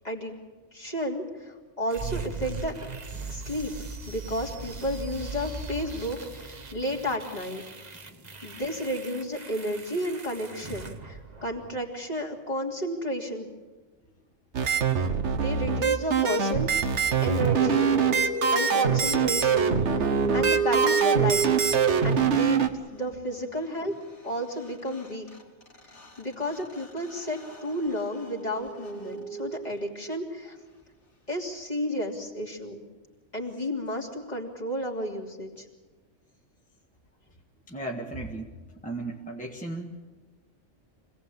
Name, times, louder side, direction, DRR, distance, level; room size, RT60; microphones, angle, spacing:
voice 1, 0.7-2.7 3.3-3.7 4.1-7.6 8.4-13.5 15.3-17.9 18.5-21.5 22.0-22.6 22.9-24.0 24.2-25.3 26.2-30.6 31.3-32.8 33.3-35.6, equal, 35° left, -2 dB, 3.2 m, -32 dB
sound 1, 1.9-11.9, right 3 dB, 35° right, 1.3 m, -39 dB
sound 2, 14.5-22.7, right 6 dB, 65° right, 1.5 m, -24 dB
sound 3, 17.0-22.4 24.3-24.4 24.6-30.1, right 5 dB, 65° left, 3.1 m, -32 dB
voice 2, 37.7-38.5 38.8-40.0, right 2 dB, 5° left, -1 dB, 1.7 m, -36 dB
25.5 x 18.0 x 8.6 m, 1.3 s
omnidirectional pair, 1.3 m